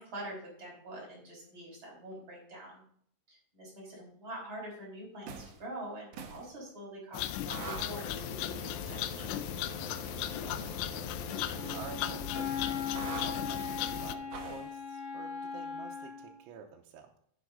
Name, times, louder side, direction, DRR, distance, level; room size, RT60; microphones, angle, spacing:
voice 1, 0.0-2.8 3.3-9.3, right 1 dB, 25° right, -4 dB, 5.4 m, -45 dB
sound 1, 5.2-5.6 6.1-6.5 7.5-11.9 12.9-13.3 14.3-14.7, right 3 dB, 70° right, 1.9 m, -43 dB
sound 2, 7.1-14.2, left 13 dB, 80° left, 2.7 m, -37 dB
voice 2, 9.9-10.8 11.7-17.2, right 7 dB, 85° right, 0 dB, 3.2 m, -50 dB
Wind instrument woodwind instrument, 11.5-16.4, left 6 dB, 45° left, 2.8 m, -38 dB
11.0 x 9.5 x 3.8 m, 0.64 s
omnidirectional pair, 5.4 m